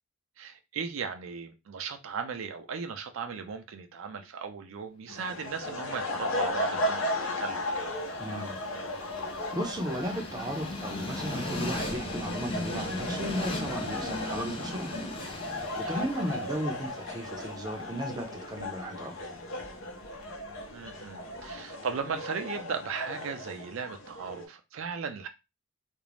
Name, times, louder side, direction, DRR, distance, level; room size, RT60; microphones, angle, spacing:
voice 1, 0.4-7.0 7.4-7.9 15.8-16.1 20.7-25.3, right 6 dB, 70° right, 0.4 m, -37 dB
sound 1, 5.1-24.4, left 1 dB, 85° left, 0.7 m, -36 dB
Train, 5.7-21.7, left 1 dB, 25° left, 0.5 m, -40 dB
voice 2, 8.2-8.6 9.3-14.9 15.4-19.1, equal, 20° right, 0.5 m, -35 dB
2.5 x 2.0 x 3.1 m
head